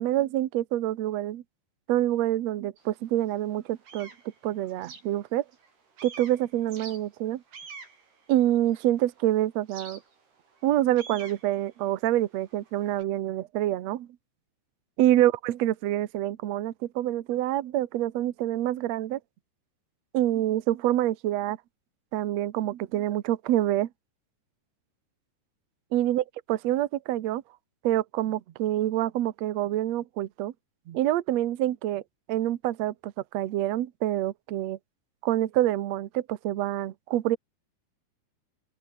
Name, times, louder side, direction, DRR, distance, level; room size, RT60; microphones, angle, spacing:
voice 1, 0.0-1.4 1.9-4.1 4.4-5.4 6.0-7.4 8.3-10.0 10.6-14.1 15.0-19.2 20.1-21.6 22.1-23.9 25.9-27.4 27.8-30.5 30.9-32.0 32.3-34.8 35.2-37.4, right 13 dB, 85° right, 1.5 m, -26 dB
sound 1, 2.8-2.9 3.4-5.7 6.0-9.1 9.7-13.0, right 5 dB, 70° right, 8.6 m, -47 dB
open air
omnidirectional pair, 4.9 m